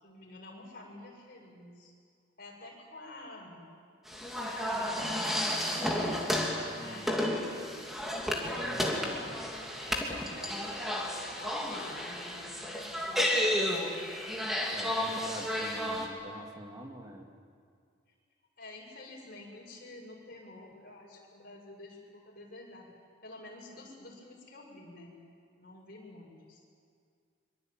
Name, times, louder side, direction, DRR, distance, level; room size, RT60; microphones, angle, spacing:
voice 1, 0.0-1.9 2.4-3.7 4.6-5.9 6.7-7.6 9.1-9.3 9.8-11.0 11.3-13.9 18.6-22.9 23.2-25.2 25.6-26.6, left 2 dB, 50° left, -2 dB, 7.2 m, -49 dB
sound 1, 4.1-16.1, left 1 dB, ahead, 2.9 m, -32 dB
voice 2, 6.7-7.2 8.3-9.2 14.7-17.3, equal, 20° right, 2 dB, 2.4 m, -44 dB
25.0 x 24.0 x 9.2 m, 2.2 s
head